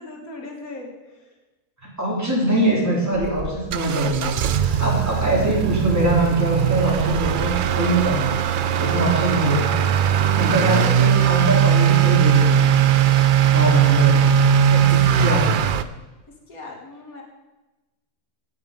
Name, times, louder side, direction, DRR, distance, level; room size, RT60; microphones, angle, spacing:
voice 1, 0.0-1.3 16.5-17.2, left 2 dB, 90° left, 1 dB, 2.3 m, -38 dB
voice 2, 2.0-9.9 10.4-12.8 13.5-15.6, right 1 dB, 10° right, -4 dB, 3.4 m, -23 dB
Motor vehicle (road) / Accelerating revving vroom, 3.1-15.8, right 9 dB, 70° right, 0.5 m, -19 dB
17.0 x 6.5 x 5.3 m, 1.1 s
omnidirectional pair, 1.5 m